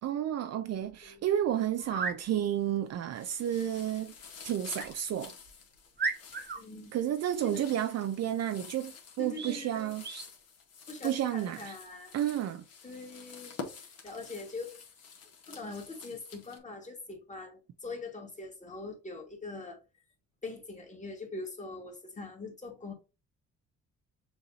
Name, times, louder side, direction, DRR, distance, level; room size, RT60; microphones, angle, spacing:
voice 1, 0.0-4.1 4.4-5.3 6.9-10.0 11.0-11.7 12.1-12.7, right 11 dB, 60° right, 0.5 m, -31 dB
sound 1, 1.8-2.2 4.7-4.9 5.5-5.6 6.0-6.6 9.3-9.6 10.0-10.3, right 4 dB, 35° right, 1.1 m, -35 dB
sound 2, 2.2-2.8 3.1-16.6, left 5 dB, 55° left, 1.6 m, -49 dB
voice 2, 6.5-7.0 7.4-7.7 9.2-10.0 10.9-12.1 12.8-14.8 15.5-19.8 20.4-22.9, left 3 dB, 25° left, 1.9 m, -43 dB
7.0 x 2.6 x 2.7 m
cardioid pair, 90°, 30 cm